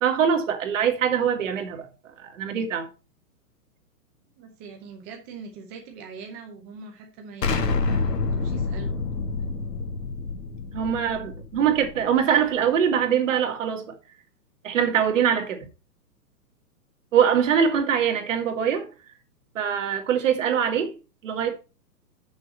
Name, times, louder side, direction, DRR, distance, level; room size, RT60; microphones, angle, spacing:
voice 1, 0.0-2.9 10.7-14.0 14.6-15.7 17.1-18.9 19.6-21.0 21.2-21.5, right 8 dB, 50° right, 2.0 m, -23 dB
voice 2, 4.4-9.0, right 5 dB, 10° right, 0.6 m, -42 dB
Explosion, 7.4-12.2, left 3 dB, 90° left, 2.1 m, -28 dB
6.7 x 6.3 x 5.5 m
hypercardioid pair, 170°, 47 cm